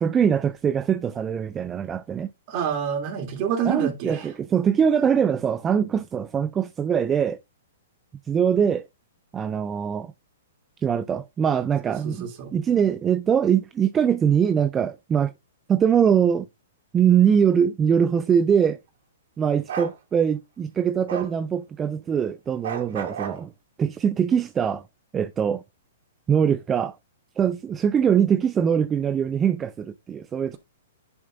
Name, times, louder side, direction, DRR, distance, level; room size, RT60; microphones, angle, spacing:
voice 1, 0.0-2.3 3.6-7.4 8.3-8.9 9.3-10.1 10.8-15.3 15.7-16.5 16.9-18.8 19.4-23.5 23.8-24.8 25.1-25.6 26.3-26.9 27.4-30.6, right 8 dB, 15° right, 0.4 m, -22 dB
voice 2, 2.5-4.3 12.0-12.5, right 7 dB, 40° right, 3.1 m, -27 dB
Bark, 19.7-19.9 21.1-21.3 22.6-23.4, right 8 dB, 70° right, 2.2 m, -31 dB
10.5 x 6.0 x 2.6 m
hypercardioid pair, 145°, 0 cm